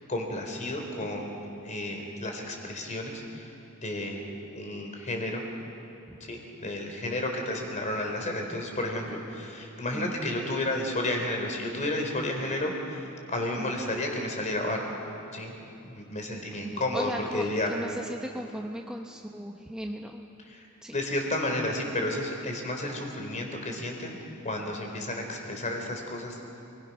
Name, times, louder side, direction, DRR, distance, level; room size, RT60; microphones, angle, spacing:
voice 1, 0.1-1.3 1.6-3.5 3.8-5.4 6.2-14.8 15.3-15.5 15.8-17.7 20.5-20.7 20.9-24.2 24.4-26.4, left 1 dB, 35° left, 2 dB, 4.0 m, -32 dB
voice 2, 16.6-20.3 20.8-21.0, equal, 5° right, 0 dB, 1.1 m, -37 dB
29.5 x 21.5 x 6.2 m, 2.9 s
head